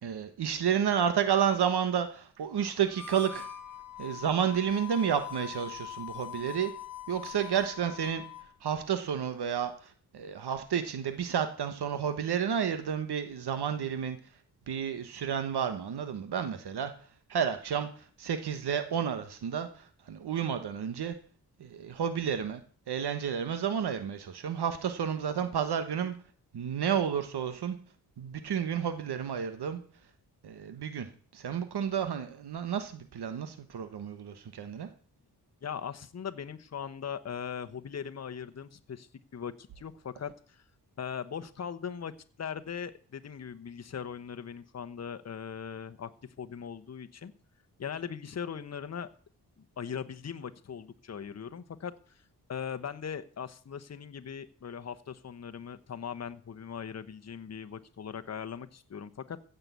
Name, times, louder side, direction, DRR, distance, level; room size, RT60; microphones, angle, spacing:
voice 1, 0.0-3.4 4.0-6.7 7.1-8.2 8.6-14.4 14.7-21.2 21.6-22.6 22.9-26.1 26.5-27.8 28.2-29.8 30.4-31.1 31.3-34.9, right 8 dB, 80° right, 9 dB, 1.3 m, -31 dB
Harmonica, 2.8-8.5, left 10 dB, 60° left, 1.5 m, -43 dB
voice 2, 35.6-40.6 41.0-42.1 42.4-46.1 46.4-47.3 47.8-49.1 49.8-52.2 52.5-59.4, left 7 dB, 40° left, 9 dB, 1.0 m, -39 dB
15.5 x 6.8 x 8.3 m, 0.44 s
wide cardioid pair, 115°, 38 cm